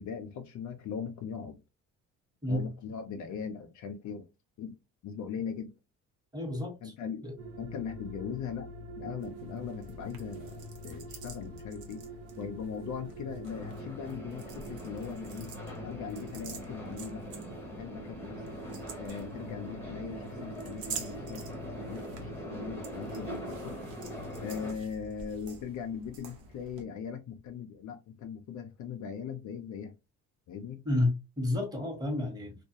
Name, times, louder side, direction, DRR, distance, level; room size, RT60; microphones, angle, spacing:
voice 1, 0.0-1.6 2.5-4.3 4.6-4.8 5.0-5.7 6.8-7.3 7.6-8.7 9.0-12.1 12.4-15.5 15.8-17.3 17.5-18.6 19.0-23.8 24.4-29.9 30.5-30.8, left 7 dB, 55° left, 0.5 m, -40 dB
voice 2, 6.3-6.7 7.2-7.3 30.8-32.6, left 1 dB, 10° right, 1.2 m, -30 dB
sound 1, 7.4-25.1, left 1 dB, 40° right, 0.6 m, -46 dB
sound 2, 9.2-26.8, right 5 dB, 80° right, 0.8 m, -49 dB
sound 3, 13.4-24.7, right 1 dB, 5° left, 1.0 m, -43 dB
2.3 x 2.1 x 2.7 m
cardioid pair, 85°, 34 cm